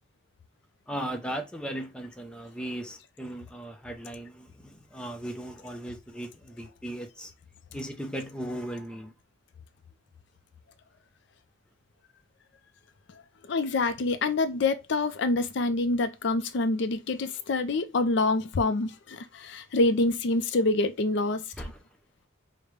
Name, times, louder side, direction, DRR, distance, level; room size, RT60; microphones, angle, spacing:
voice 1, 0.9-7.3 7.7-9.1 21.6-21.7, right 1 dB, 5° left, 0.5 m, -37 dB
voice 2, 13.5-21.4, left 2 dB, 60° left, 0.4 m, -26 dB
5.0 x 2.1 x 3.1 m
head